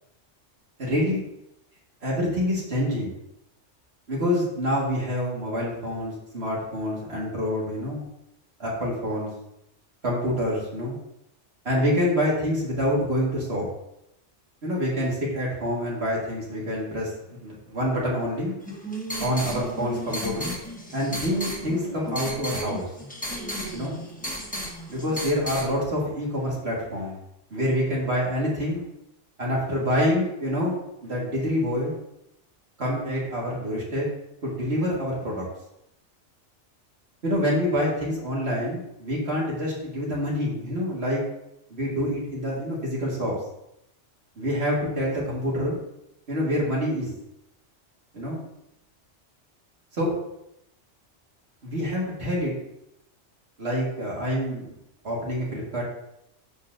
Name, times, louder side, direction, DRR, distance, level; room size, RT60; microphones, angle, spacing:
voice 1, 0.8-1.2 2.0-3.1 4.1-8.0 8.6-9.3 10.0-11.0 11.7-13.7 14.6-18.5 19.2-20.5 20.9-22.9 23.7-24.0 24.9-27.2 27.5-28.8 29.4-30.8 31.0-31.9 32.8-34.1 34.4-35.5 37.2-41.2 41.7-43.4 44.4-45.8 46.3-47.1 48.1-48.4 49.9-50.1 51.6-52.5 53.6-54.8 55.0-55.8, equal, 60° right, -4 dB, 2.1 m, -26 dB
sound 1, 18.6-25.7, equal, 5° left, 1.0 m, -34 dB
12.5 x 4.2 x 2.6 m, 0.83 s
omnidirectional pair, 1.2 m